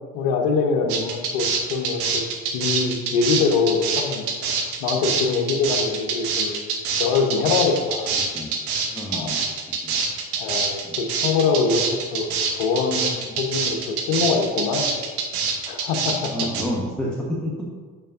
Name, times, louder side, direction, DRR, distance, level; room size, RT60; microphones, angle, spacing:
voice 1, 0.1-2.2 2.5-6.6 7.0-8.1 9.1-9.4 10.4-11.8 12.1-14.9 15.7-16.3, left 5 dB, 55° left, 4 dB, 1.0 m, -24 dB
sound 1, 0.9-16.6, right 5 dB, 70° right, 1.2 m, -25 dB
voice 2, 8.9-9.4 9.8-9.9 10.8-11.0 13.3-13.4 16.2-17.7, equal, ahead, -4 dB, 1.2 m, -29 dB
9.0 x 6.9 x 2.6 m, 1.5 s
figure-of-eight pair, 55°, 46 cm